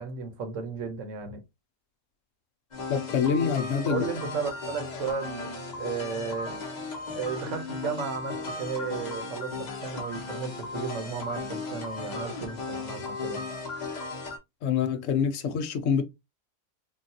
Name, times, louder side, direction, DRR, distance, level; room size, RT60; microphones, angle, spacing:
voice 1, 0.0-1.4 3.9-6.5 7.2-13.4, right 5 dB, 65° right, 1.1 m, -34 dB
sound 1, 2.7-14.4, left 3 dB, 40° left, 0.7 m, -36 dB
voice 2, 2.9-4.0 14.6-16.0, left 7 dB, 70° left, 0.9 m, -26 dB
3.8 x 2.3 x 2.7 m
omnidirectional pair, 1.5 m